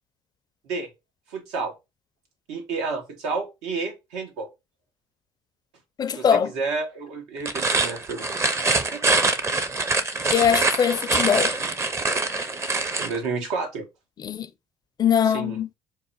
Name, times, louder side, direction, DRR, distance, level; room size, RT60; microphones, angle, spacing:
voice 1, 1.3-1.7 2.5-4.5 6.1-8.3 13.0-13.9 15.2-15.6, right 4 dB, 85° right, 1.1 m, -30 dB
voice 2, 6.0-6.5 10.3-11.5 14.2-14.5 15.0-15.7, left 8 dB, 40° left, 0.4 m, -21 dB
sound 1, 7.4-13.2, right 3 dB, 25° right, 0.6 m, -24 dB
3.9 x 2.1 x 4.0 m
supercardioid pair, 85°, 11 cm